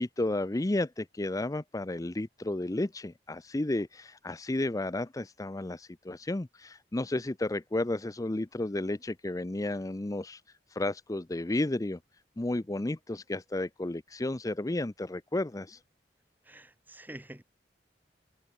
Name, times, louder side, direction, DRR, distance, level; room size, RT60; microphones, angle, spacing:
voice 1, 0.0-10.4 10.7-12.0 12.4-15.8, left 2 dB, 20° left, 0.6 m, -32 dB
voice 2, 16.4-17.4, right 1 dB, 10° right, 1.2 m, -47 dB
head